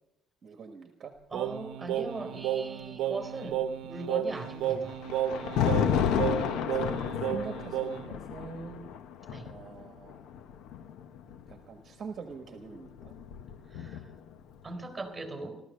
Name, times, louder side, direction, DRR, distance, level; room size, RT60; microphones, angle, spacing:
voice 1, 0.4-1.1 6.7-8.9 9.4-10.2 11.5-13.2, right 5 dB, 40° right, 5 dB, 1.4 m, -44 dB
voice 2, 1.3-5.0 9.3-9.5 13.7-14.1 14.6-15.6, right 2 dB, 10° right, 5 dB, 3.8 m, -39 dB
Singing, 1.3-8.2, right 10 dB, 70° right, 0.8 m, -33 dB
Thunder, 4.3-11.5 12.6-14.3, left 8 dB, 75° left, 0.9 m, -32 dB
16.5 x 13.5 x 6.6 m, 0.96 s
cardioid pair, 145°, 0 cm